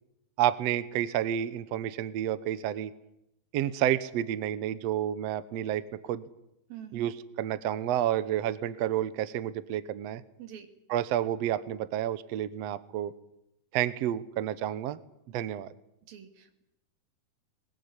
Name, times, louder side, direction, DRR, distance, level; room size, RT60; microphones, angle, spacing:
voice 1, 0.4-2.9 3.5-6.2 6.9-10.2 10.9-13.1 13.7-15.0 15.3-15.7, right 11 dB, 85° right, 15 dB, 1.4 m, -30 dB
voice 2, 6.7-7.1 10.4-10.7 16.1-16.6, right 10 dB, 65° right, 7 dB, 4.1 m, -45 dB
22.0 x 20.5 x 9.8 m, 0.82 s
omnidirectional pair, 4.5 m